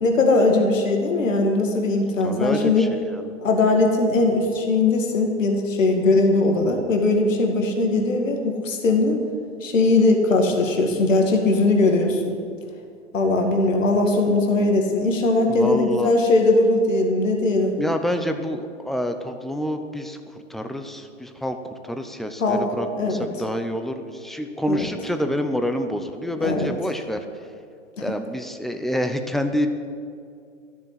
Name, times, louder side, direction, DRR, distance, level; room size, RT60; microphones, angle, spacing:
voice 1, 0.0-2.9 3.4-9.2 9.6-12.4 13.1-17.7 22.4-22.6 22.9-23.3 24.7-24.9 26.4-26.7 28.0-28.1, left 2 dB, 75° left, 2 dB, 2.2 m, -20 dB
voice 2, 2.2-3.3 15.5-16.1 17.8-27.2 28.0-29.7, equal, ahead, 6 dB, 0.5 m, -27 dB
13.5 x 7.1 x 9.7 m, 2.4 s
hypercardioid pair, 115°, 39 cm